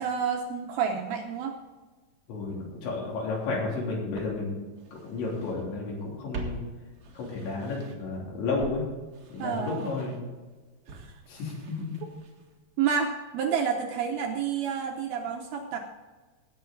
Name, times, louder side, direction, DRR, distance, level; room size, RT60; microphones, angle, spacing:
voice 1, 0.0-1.5 9.4-9.8 10.9-11.2 12.8-15.8, right 7 dB, 75° right, 3 dB, 2.4 m, -29 dB
voice 2, 2.3-4.6 5.0-6.6 7.2-8.8 9.3-10.1 11.3-12.0, left 3 dB, 75° left, -3 dB, 5.6 m, -32 dB
Walk footsteps, 3.4-3.5 4.1-5.6 5.9-8.2 8.6-12.6 12.9-13.0, right 3 dB, 55° right, 1.5 m, -44 dB
18.0 x 8.0 x 3.9 m, 1.3 s
omnidirectional pair, 5.2 m